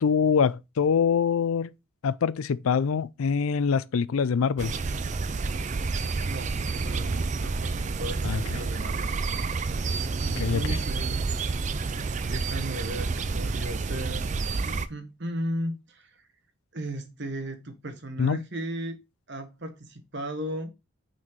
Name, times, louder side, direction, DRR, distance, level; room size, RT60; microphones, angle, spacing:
voice 1, 0.0-1.7 2.0-4.7 8.2-8.4 10.4-10.8 18.2-18.4, left 6 dB, 75° left, 0.4 m, -24 dB
sound 1, 4.6-14.9, right 4 dB, 35° right, 0.4 m, -29 dB
voice 2, 6.2-9.1 10.2-11.2 12.2-14.3 14.6-16.1 16.7-19.0 19.3-20.7, right 1 dB, 55° right, 1.2 m, -36 dB
6.0 x 4.3 x 4.5 m
head